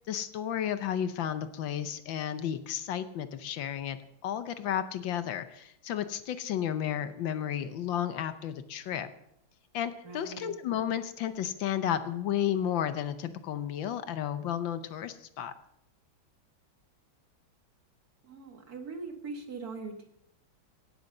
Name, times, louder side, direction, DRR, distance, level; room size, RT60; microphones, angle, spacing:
voice 1, 0.1-4.0 4.2-9.1 9.7-15.5, left 10 dB, 70° left, 11 dB, 1.5 m, -32 dB
voice 2, 10.0-10.5 18.2-20.1, right 4 dB, 50° right, 5 dB, 2.0 m, -41 dB
17.5 x 8.1 x 6.6 m, 0.78 s
omnidirectional pair, 2.3 m